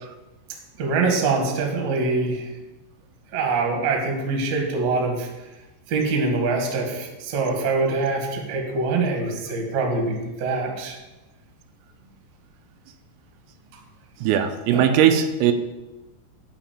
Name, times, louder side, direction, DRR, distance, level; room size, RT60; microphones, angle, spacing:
voice 1, 0.8-2.5 3.3-5.3 5.9-11.0 14.7-14.9, right 3 dB, 50° right, 1 dB, 2.4 m, -24 dB
voice 2, 14.2-15.5, right 9 dB, 85° right, 7 dB, 3.4 m, -19 dB
11.5 x 5.1 x 8.7 m, 1.1 s
omnidirectional pair, 6.0 m